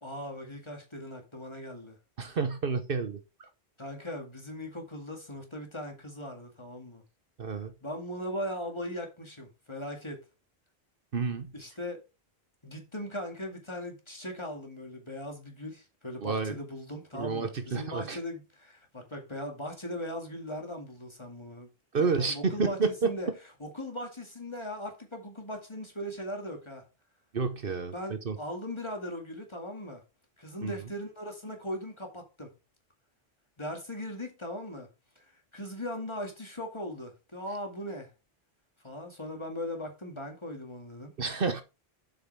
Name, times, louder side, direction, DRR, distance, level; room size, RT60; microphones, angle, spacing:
voice 1, 0.0-2.0 3.8-7.0 7.8-10.2 11.5-12.0 12.6-21.7 21.9-22.8 23.0-23.3 23.6-26.8 27.9-30.0 30.4-32.5 33.6-34.9 35.2-35.3 35.5-38.1 38.8-41.1, left 1 dB, 25° left, 2.1 m, -39 dB
voice 2, 2.2-3.5 7.4-7.7 11.1-11.5 16.2-16.6 17.1-18.2 21.9-23.1 27.3-28.4 30.6-30.7 41.2-41.6, right 4 dB, 60° right, 1.1 m, -30 dB
7.8 x 5.5 x 4.6 m
omnidirectional pair, 1.1 m